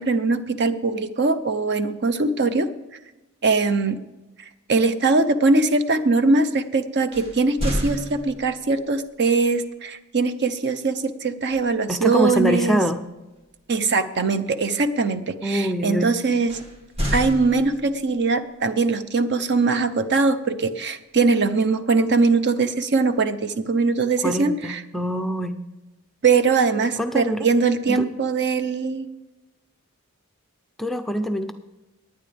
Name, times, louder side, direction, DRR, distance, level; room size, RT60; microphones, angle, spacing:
voice 1, 0.0-2.7 3.4-4.0 4.7-12.8 13.7-16.6 17.1-24.8 26.2-29.1, right 4 dB, 50° right, 11 dB, 0.7 m, -21 dB
sound 1, 7.1-8.8 11.5-11.8 12.2-12.5 16.5-18.1, equal, 30° right, 1.9 m, -29 dB
voice 2, 11.9-13.0 15.4-16.1 24.2-25.6 27.0-27.5 27.9-28.1 30.8-31.5, equal, ahead, 7 dB, 0.5 m, -24 dB
19.5 x 9.3 x 3.4 m, 1.1 s
head